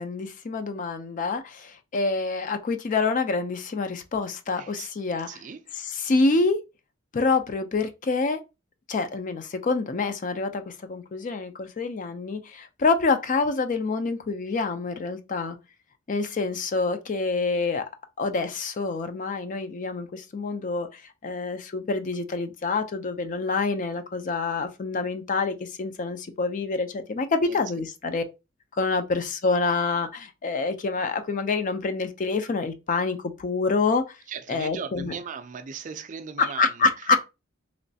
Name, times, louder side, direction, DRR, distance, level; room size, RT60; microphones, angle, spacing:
voice 1, 0.0-5.3 5.7-6.6 7.1-8.4 8.9-15.6 16.1-17.8 18.2-28.2 28.8-34.1 34.5-35.1 36.4-37.2, left 3 dB, 40° left, 0.4 m, -27 dB
voice 2, 4.6-4.9 5.3-5.6 27.5-27.6 34.3-36.8, right 6 dB, 40° right, 0.4 m, -38 dB
3.1 x 3.0 x 2.7 m
head